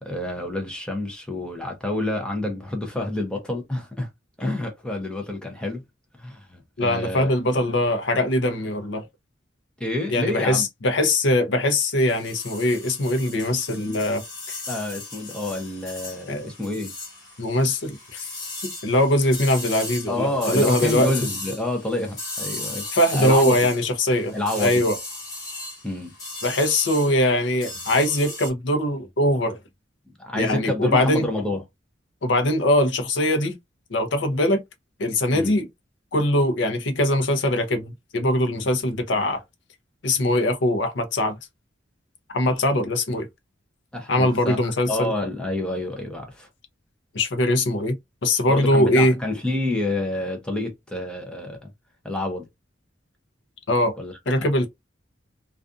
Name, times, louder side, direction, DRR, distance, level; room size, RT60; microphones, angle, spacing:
voice 1, 0.0-4.1 4.4-5.8 6.2-7.6 9.8-10.7 14.7-16.9 20.1-22.9 23.1-23.5 24.3-24.8 25.8-26.1 30.2-31.6 35.3-35.6 43.9-46.5 48.5-51.7 52.0-52.5 54.0-54.2, left 1 dB, 5° left, 0.6 m, -28 dB
voice 2, 6.8-9.1 10.1-14.2 14.5-14.6 16.3-16.5 17.4-18.3 18.6-21.1 22.9-25.0 26.4-29.6 30.3-31.3 32.2-33.6 33.9-34.6 35.0-35.7 36.1-39.4 40.0-41.4 42.3-43.3 44.1-45.1 47.1-48.0 48.2-49.2 53.7-54.0 54.3-54.7, left 1 dB, 65° left, 0.6 m, -22 dB
sound 1, 12.0-28.5, left 2 dB, 20° left, 1.2 m, -36 dB
2.5 x 2.4 x 2.4 m
head